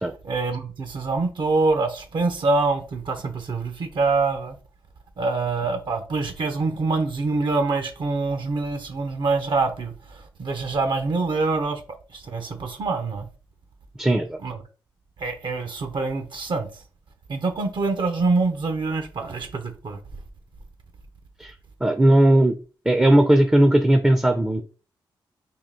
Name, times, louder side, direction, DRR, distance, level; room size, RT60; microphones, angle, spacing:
voice 1, 0.2-4.6 5.2-11.8 12.1-13.3 14.4-14.6 15.2-16.7 17.3-20.0, right 3 dB, 60° right, 0.8 m, -25 dB
voice 2, 14.0-14.4 21.4-21.5 21.8-22.6 22.9-24.6, right 1 dB, 10° right, 0.5 m, -17 dB
3.7 x 2.4 x 3.7 m
cardioid pair, 60°, 9 cm